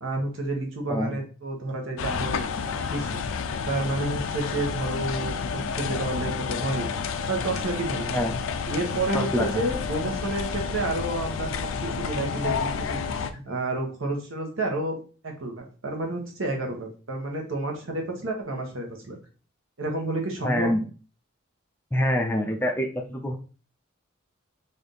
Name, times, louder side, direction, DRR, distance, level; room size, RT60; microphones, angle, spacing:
voice 1, 0.0-2.5 2.9-3.2 3.7-6.9 7.3-8.1 8.7-11.6 12.0-13.0 13.3-15.0 15.2-19.2 19.8-20.7, right 2 dB, 75° right, 1 dB, 1.1 m, -30 dB
voice 2, 0.9-1.2 8.1-8.4 9.1-9.6 20.4-20.8 21.9-23.3, equal, 10° left, 3 dB, 0.4 m, -26 dB
sound 1, 2.0-13.3, left 5 dB, 75° left, 0.4 m, -30 dB
3.3 x 2.7 x 3.8 m, 0.37 s
head